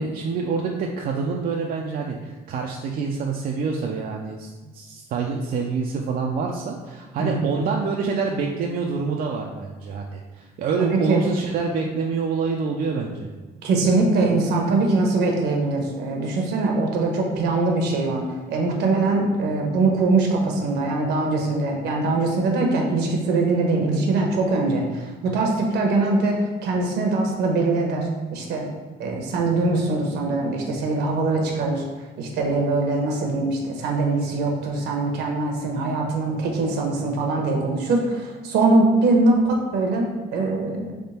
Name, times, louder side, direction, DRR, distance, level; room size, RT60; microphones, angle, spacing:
voice 1, 0.0-13.3, right 4 dB, 60° right, 0 dB, 0.5 m, -26 dB
voice 2, 7.2-7.5 10.8-11.2 13.6-28.7 29.0-31.8 32.2-40.9, right 3 dB, 80° right, 1 dB, 1.0 m, -22 dB
3.6 x 3.2 x 4.2 m, 1.3 s
cardioid pair, 110°, 17 cm